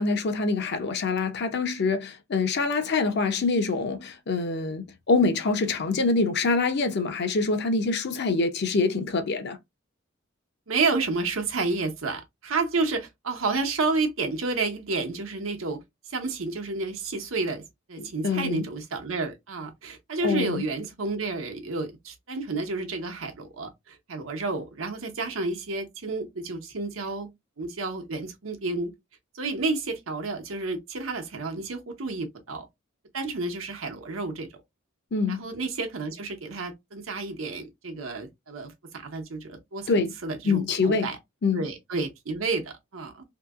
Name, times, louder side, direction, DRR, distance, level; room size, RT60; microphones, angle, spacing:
voice 1, 0.0-9.6 18.0-18.6 20.2-20.6 35.1-35.4 39.9-40.1 40.4-41.1 41.4-41.6, left 3 dB, 55° left, 0.6 m, -25 dB
voice 2, 10.7-15.8 16.1-17.6 17.9-27.3 27.6-28.9 29.3-32.7 33.1-34.5 35.3-41.2 41.5-43.2, right 3 dB, 90° right, 0.9 m, -30 dB
2.8 x 2.7 x 2.4 m
head